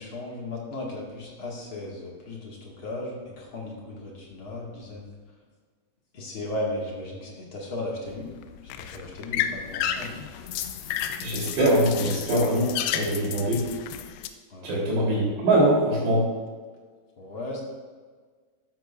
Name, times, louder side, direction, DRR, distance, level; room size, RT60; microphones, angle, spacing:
voice 1, 0.0-5.1 6.1-8.3 8.8-10.4 14.5-14.7 17.2-17.6, left 2 dB, 40° left, -3 dB, 2.3 m, -36 dB
sound 1, 8.1-14.3, left 10 dB, 90° left, 2.8 m, -32 dB
voice 2, 11.2-13.7 14.6-16.3, right 1 dB, 85° right, -6 dB, 5.9 m, -23 dB
13.0 x 13.0 x 2.6 m, 1.5 s
omnidirectional pair, 4.8 m